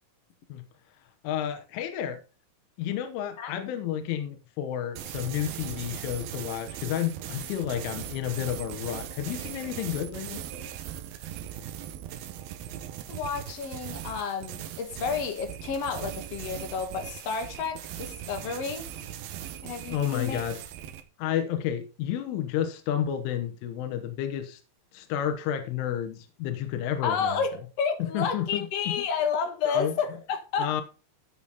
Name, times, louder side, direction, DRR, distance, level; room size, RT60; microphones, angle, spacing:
voice 1, 1.2-2.2 2.8-10.4 19.9-20.6 21.2-24.6 24.9-27.4 28.0-28.9 29.7-30.0 30.6-30.8, left 10 dB, 80° left, 3.6 m, -31 dB
sound 1, 5.0-21.0, right 11 dB, 75° right, 2.2 m, -39 dB
voice 2, 13.1-18.9 19.6-20.4 27.0-30.8, left 6 dB, 60° left, 1.7 m, -31 dB
15.0 x 5.9 x 4.1 m
omnidirectional pair, 5.6 m